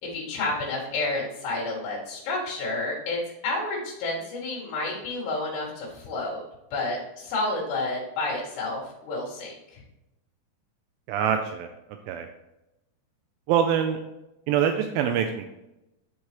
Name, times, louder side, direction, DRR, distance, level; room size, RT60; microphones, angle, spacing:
voice 1, 0.0-6.4 6.7-9.8, left 2 dB, 90° left, -4 dB, 4.2 m, -30 dB
voice 2, 11.1-11.7 12.1-12.3 13.5-14.0 14.5-15.5, right 8 dB, 85° right, 5 dB, 2.1 m, -24 dB
12.0 x 4.8 x 3.0 m, 0.92 s
omnidirectional pair, 4.7 m